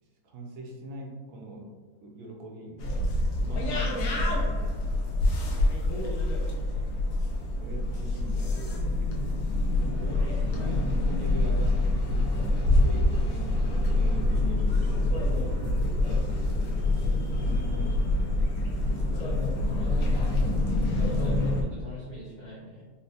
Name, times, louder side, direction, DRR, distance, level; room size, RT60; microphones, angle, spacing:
voice 1, 0.0-1.7 2.0-3.1 3.4-4.8 7.6-8.8 10.3-15.6 17.0-18.4 21.2-21.4, right 1 dB, 75° right, 0 dB, 1.1 m, -41 dB
sound 1, 2.8-21.6, left 2 dB, 80° left, 1.2 m, -26 dB
voice 2, 6.5-6.9 18.9-19.3 19.7-20.3 20.9-22.8, equal, 60° left, -7 dB, 0.4 m, -44 dB
4.2 x 2.1 x 2.6 m, 1.4 s
omnidirectional pair, 1.7 m